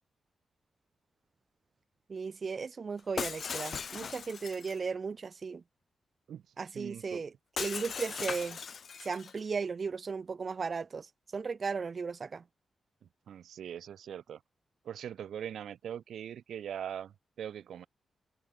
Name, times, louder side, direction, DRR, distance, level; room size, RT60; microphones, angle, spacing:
voice 1, 2.1-5.6 6.6-7.3 7.6-8.6 9.0-12.4, right 5 dB, 50° right, 0.7 m, -36 dB
Shatter, 3.2-4.8 7.6-9.4, left 6 dB, 60° left, 0.4 m, -38 dB
voice 2, 6.7-7.2 13.3-14.4 14.8-17.9, right 9 dB, 85° right, 1.2 m, -41 dB
cardioid pair, 85°, 0 cm